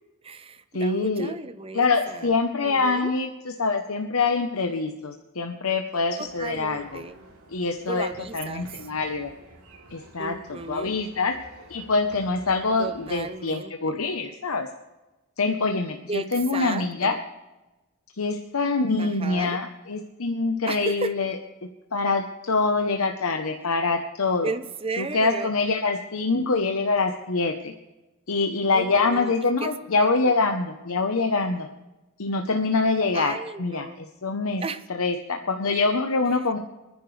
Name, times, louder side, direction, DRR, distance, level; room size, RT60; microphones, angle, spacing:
voice 1, 0.2-2.3 2.6-3.1 6.2-7.2 7.9-8.7 10.2-11.0 12.8-14.0 16.1-17.2 19.0-19.6 20.7-21.1 24.4-25.5 28.7-29.3 29.6-30.3 33.1-34.0 34.6-34.8, right 3 dB, 25° right, 12 dB, 0.6 m, -34 dB
voice 2, 0.7-1.3 1.7-7.0 7.5-9.3 9.9-11.4 11.7-14.7 15.4-17.2 18.2-21.4 21.9-24.5 25.0-27.7 28.3-31.7 32.2-34.6 34.9-36.6, left 3 dB, 80° left, 4 dB, 0.9 m, -25 dB
sound 1, 6.2-13.3, right 2 dB, 85° right, 3.4 m, -50 dB
28.0 x 10.0 x 3.3 m, 1.1 s
head